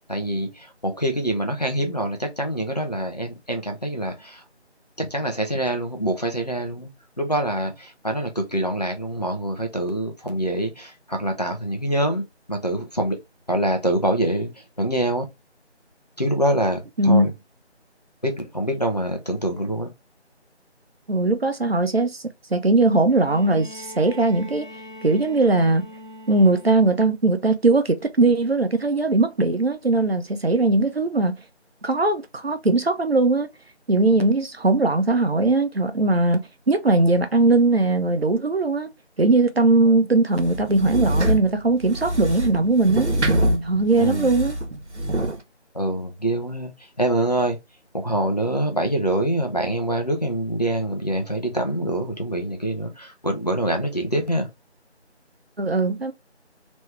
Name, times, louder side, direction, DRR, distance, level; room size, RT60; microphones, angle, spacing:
voice 1, 0.1-4.4 5.0-6.9 7.2-12.2 12.5-13.2 13.5-14.5 14.8-15.2 16.2-17.3 18.2-19.9 44.0-44.3 45.7-46.7 47.0-47.6 47.9-54.5, right 1 dB, 35° left, 0.8 m, -25 dB
voice 2, 21.1-22.2 22.5-24.7 25.0-25.8 26.3-31.4 31.8-33.5 33.9-38.9 39.2-43.1 43.6-44.6 55.6-56.1, right 2 dB, 60° right, 0.8 m, -20 dB
Bowed string instrument, 23.1-27.1 28.4-28.5, left 1 dB, 45° right, 1.1 m, -42 dB
sound 1, 40.4-45.4, right 1 dB, 80° right, 1.2 m, -25 dB
3.4 x 3.1 x 3.3 m
figure-of-eight pair, 175°, 34 cm